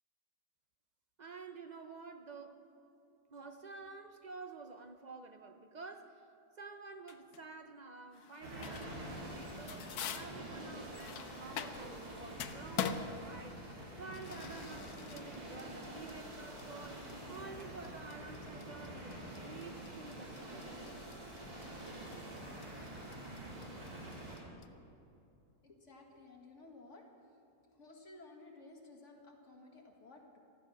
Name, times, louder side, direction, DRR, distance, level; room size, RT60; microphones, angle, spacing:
voice 1, 1.2-2.6 3.3-6.3 6.6-13.6 14.0-19.2 19.4-20.8, right 4 dB, 45° right, 6 dB, 0.6 m, -50 dB
sound 1, 7.1-7.4 8.1-9.1 9.4-12.0 12.3-24.7, left 8 dB, 85° left, 1.2 m, -44 dB
sound 2, 8.4-24.4, right 1 dB, 80° right, 3.8 m, -47 dB
voice 2, 25.6-27.4 27.7-30.4, left 2 dB, 50° left, 1 dB, 2.2 m, -56 dB
14.5 x 13.5 x 6.4 m, 2.7 s
omnidirectional pair, 1.6 m